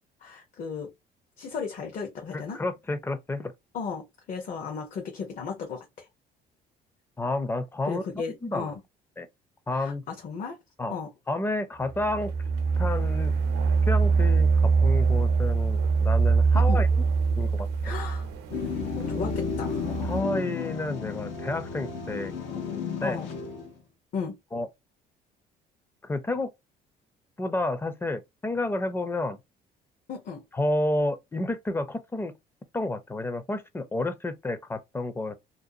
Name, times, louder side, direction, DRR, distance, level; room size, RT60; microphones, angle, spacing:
voice 1, 0.2-0.9 1.4-2.6 3.7-6.1 7.8-8.8 9.7-10.6 10.9-11.1 16.5-16.8 17.8-18.3 18.9-19.8 23.0-23.3 24.1-24.4 30.1-30.4, left 5 dB, 50° left, 0.8 m, -35 dB
voice 2, 2.3-3.5 7.2-8.0 8.4-8.7 9.2-9.3 9.7-10.0 10.8-10.9 11.3-12.3 12.8-13.3 13.9-16.9 17.4-17.5 20.0-22.3 22.7-23.2 24.5-24.7 26.0-26.5 27.4-29.4 30.5-32.3 32.7-35.4, left 2 dB, 15° left, 0.4 m, -30 dB
sound 1, 11.9-20.2, right 4 dB, 90° right, 0.6 m, -24 dB
sound 2, 18.5-23.8, left 6 dB, 85° left, 0.8 m, -33 dB
2.6 x 2.3 x 2.6 m
cardioid pair, 110°, 17 cm